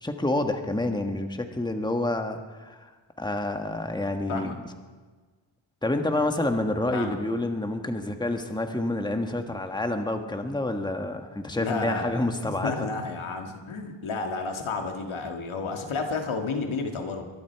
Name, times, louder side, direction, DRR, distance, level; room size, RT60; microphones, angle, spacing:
voice 1, 0.0-2.9 3.2-4.5 5.8-12.9, left 2 dB, 10° left, 5 dB, 1.4 m, -28 dB
voice 2, 11.6-17.3, left 4 dB, 80° left, 3 dB, 2.2 m, -31 dB
23.5 x 11.0 x 4.7 m, 1.4 s
cardioid pair, 80°, 48 cm